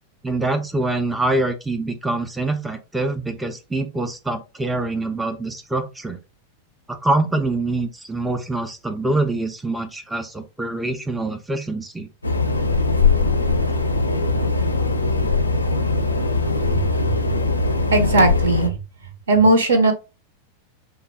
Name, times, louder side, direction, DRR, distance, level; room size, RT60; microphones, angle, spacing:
voice 1, 0.2-6.2 6.9-12.1, right 2 dB, 5° right, 0.4 m, -25 dB
sound 1, 12.2-18.7, left 3 dB, 80° left, 0.4 m, -20 dB
voice 2, 16.5-17.2 17.9-18.7 19.3-19.9, right 2 dB, 70° right, 0.8 m, -18 dB
3.5 x 2.3 x 3.4 m
figure-of-eight pair, 90°, 0 cm